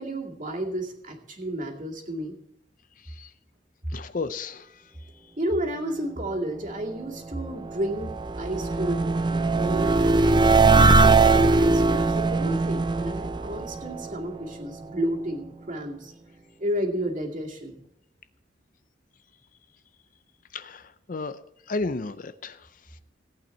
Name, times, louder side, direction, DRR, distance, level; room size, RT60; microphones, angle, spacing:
voice 1, 0.0-2.4 5.4-10.2 10.7-16.1 16.6-17.8, right 1 dB, 45° right, 0 dB, 2.3 m, -31 dB
voice 2, 3.9-4.7 20.5-20.8 21.1-21.4 21.7-22.6, left 3 dB, 45° left, 12 dB, 0.5 m, -32 dB
sound 1, 7.4-14.5, right 3 dB, 25° right, 0.5 m, -21 dB
17.0 x 8.8 x 4.4 m, 0.86 s
head